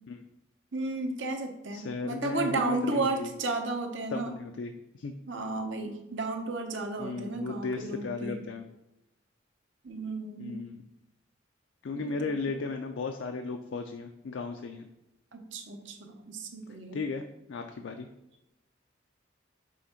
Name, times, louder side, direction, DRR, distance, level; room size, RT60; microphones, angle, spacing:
voice 1, 0.7-4.3 5.3-8.4 9.8-10.6 11.9-12.5 15.3-17.0, right 3 dB, 85° right, 4 dB, 0.9 m, -33 dB
voice 2, 1.7-3.3 4.1-5.1 7.0-8.6 10.4-10.8 11.8-14.9 16.9-18.1, left 4 dB, 85° left, 5 dB, 0.4 m, -35 dB
6.3 x 3.5 x 4.4 m, 0.90 s
head